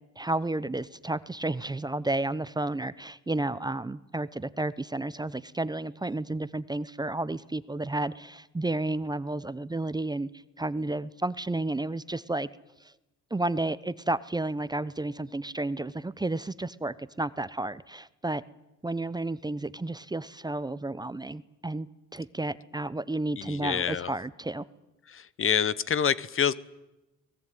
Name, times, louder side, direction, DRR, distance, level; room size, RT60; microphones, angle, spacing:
voice 1, 0.2-10.3 10.6-12.5 12.8-12.9 13.3-18.4 18.8-21.9 22.1-24.7, right 2 dB, 15° right, 17 dB, 0.8 m, -32 dB
voice 2, 23.4-24.1 25.1-26.5, left 8 dB, 45° left, 19 dB, 1.0 m, -27 dB
23.0 x 19.5 x 9.2 m, 0.97 s
cardioid pair, 90°, 30 cm